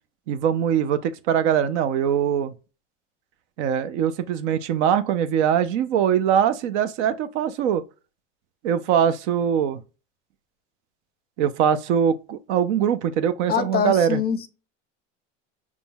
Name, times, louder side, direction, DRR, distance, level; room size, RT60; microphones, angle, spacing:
voice 1, 0.3-2.5 3.6-7.8 8.6-9.8 11.4-14.2, right 8 dB, 70° right, 0.8 m, -22 dB
voice 2, 13.5-14.5, left 8 dB, 25° left, 0.6 m, -24 dB
5.3 x 3.2 x 2.3 m
supercardioid pair, 110°, 36 cm